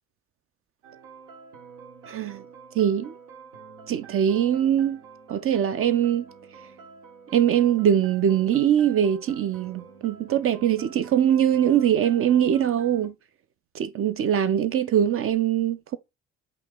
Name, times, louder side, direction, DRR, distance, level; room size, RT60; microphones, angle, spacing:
sound 1, 0.8-13.1, right 5 dB, 80° right, 0.9 m, -47 dB
voice 1, 2.1-2.4 2.7-3.1 3.9-5.0 5.3-6.3 7.3-13.1 13.7-16.0, right 9 dB, 45° right, 0.5 m, -22 dB
5.6 x 2.5 x 3.6 m
hypercardioid pair, 55°, 30 cm